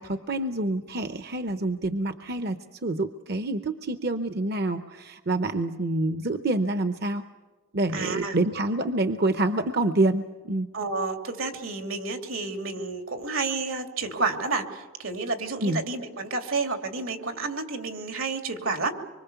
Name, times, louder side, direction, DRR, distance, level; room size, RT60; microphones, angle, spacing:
voice 1, 0.0-7.2 7.7-10.7 15.6-15.8, right 2 dB, 50° right, 9 dB, 0.8 m, -27 dB
voice 2, 7.9-8.4 10.7-18.9, right 3 dB, 80° right, 5 dB, 2.7 m, -30 dB
25.5 x 24.0 x 7.0 m, 1.3 s
head